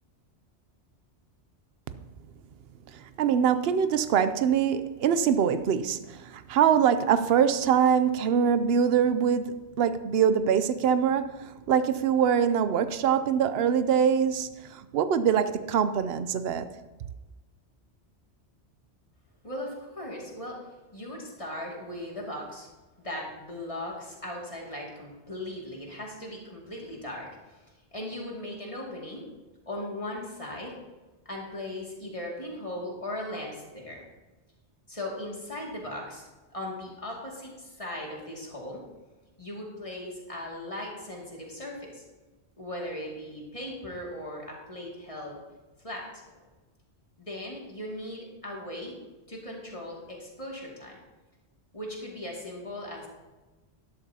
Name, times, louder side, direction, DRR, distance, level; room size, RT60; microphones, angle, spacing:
voice 1, 2.9-16.7, right 8 dB, 65° right, 0.8 m, -24 dB
voice 2, 19.4-20.6 20.9-22.7 23.0-27.3 27.9-29.3 29.7-30.8 31.3-34.0 34.9-36.3 36.5-38.8 39.4-42.0 42.6-45.4 45.8-46.4 47.2-48.9 49.3-51.0 51.7-53.1, left 1 dB, 30° left, 2.4 m, -38 dB
12.0 x 12.0 x 2.8 m
omnidirectional pair, 1.2 m